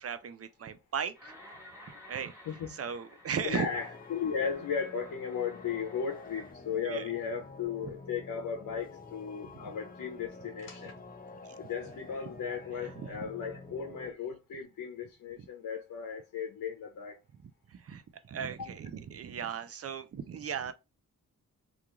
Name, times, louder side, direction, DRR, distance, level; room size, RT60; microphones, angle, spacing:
voice 1, 0.0-1.3 2.1-2.3 2.7-3.7 6.8-7.1 9.4-9.7 11.4-11.6 12.8-13.2 17.4-20.7, right 7 dB, 45° right, 0.4 m, -37 dB
sound 1, 1.1-6.5, left 1 dB, 10° right, 1.1 m, -54 dB
voice 2, 2.5-2.8 3.4-10.9 11.6-17.2 18.6-18.7, left 6 dB, 70° left, 0.7 m, -36 dB
sound 2, 3.4-14.1, left 3 dB, 25° left, 0.6 m, -49 dB
2.4 x 2.3 x 2.9 m
cardioid pair, 70°, 34 cm